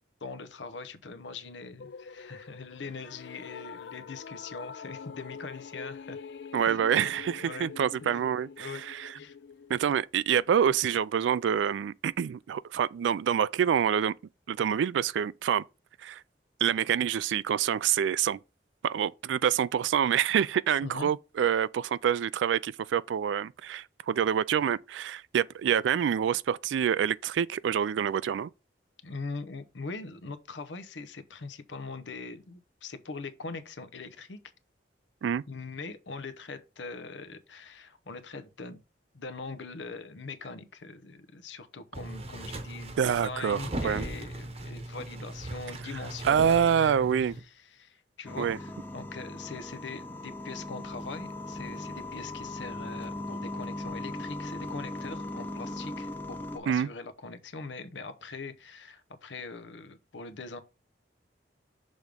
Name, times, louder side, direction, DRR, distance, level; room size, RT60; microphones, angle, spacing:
voice 1, 0.2-6.2 6.7-6.8 7.4-7.7 8.0-8.2 8.6-8.8 9.1-9.4 20.8-21.1 29.0-34.4 35.5-38.8 39.1-60.6, left 4 dB, 90° left, 0.8 m, -42 dB
sound 1, 1.8-10.0, left 6 dB, 65° left, 0.4 m, -45 dB
voice 2, 6.5-9.1 9.7-14.1 14.5-15.6 16.0-16.2 16.6-18.4 18.8-28.5 35.2-35.4 43.0-44.0 46.3-47.3 48.4-48.6 56.7-56.9, right 8 dB, 85° right, 0.3 m, -27 dB
sound 2, 41.9-47.4, right 1 dB, 35° right, 0.8 m, -38 dB
sound 3, 48.2-56.6, left 1 dB, 10° left, 0.7 m, -38 dB
6.4 x 3.5 x 5.1 m
head